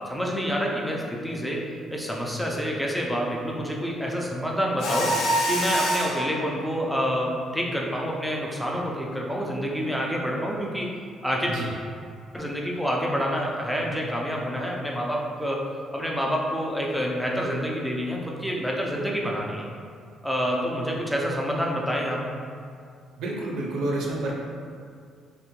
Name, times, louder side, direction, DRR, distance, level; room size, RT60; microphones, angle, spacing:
voice 1, 0.1-5.2 5.5-10.9 11.2-11.6 12.3-15.7 15.9-19.6 20.2-22.2, equal, ahead, -2 dB, 0.3 m, -28 dB
Mechanisms, 4.8-6.3, equal, 80° left, 0.4 m, -25 dB
voice 2, 23.2-24.3, right 2 dB, 80° right, -3 dB, 0.4 m, -29 dB
2.6 x 2.1 x 2.9 m, 2.3 s
cardioid pair, 155°, 0 cm